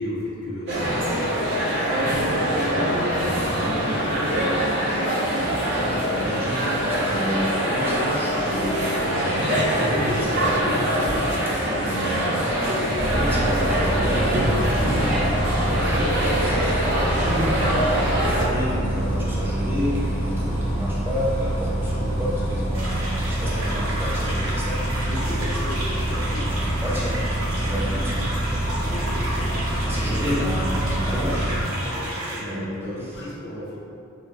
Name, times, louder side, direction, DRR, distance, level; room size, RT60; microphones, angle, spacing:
voice 1, 0.0-2.0 2.3-4.5 10.7-11.2 11.6-11.8 15.2-16.0 25.0-26.5 28.7-30.6 31.0-31.4 31.7-33.8, left 1 dB, 55° left, -8 dB, 0.9 m, -35 dB
sound 1, 0.7-18.4, equal, 55° right, 0.7 m, -23 dB
voice 2, 5.3-10.6 11.6-15.1 16.2-24.9 26.6-28.2 29.7-31.4 32.4-32.6, equal, 10° right, -7 dB, 0.4 m, -31 dB
Bus, 12.9-31.6, right 1 dB, 35° left, 1.4 m, -26 dB
sound 2, 22.7-32.4, right 1 dB, 85° right, 0.9 m, -32 dB
4.3 x 2.2 x 2.6 m, 2.6 s
head